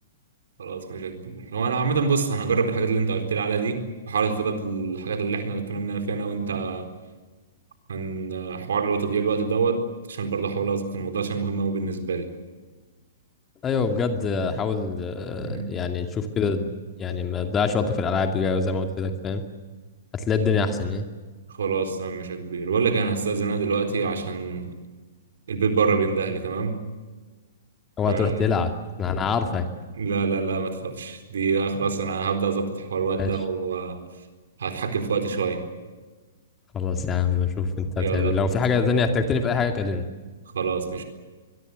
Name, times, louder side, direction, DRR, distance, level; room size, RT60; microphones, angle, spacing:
voice 1, 0.6-3.8 4.1-6.9 7.9-9.8 10.1-12.3 15.4-15.7 21.5-24.7 25.5-26.8 28.1-28.5 29.9-34.0 34.6-35.6 38.0-38.4 40.5-41.0, right 5 dB, 60° right, 7 dB, 4.1 m, -26 dB
voice 2, 13.6-16.7 17.0-19.4 20.1-21.0 28.0-28.7 29.0-29.7 33.2-33.3 36.7-40.0, left 5 dB, 20° left, 6 dB, 2.4 m, -24 dB
24.0 x 22.5 x 8.1 m, 1.3 s
figure-of-eight pair, 110°, 0 cm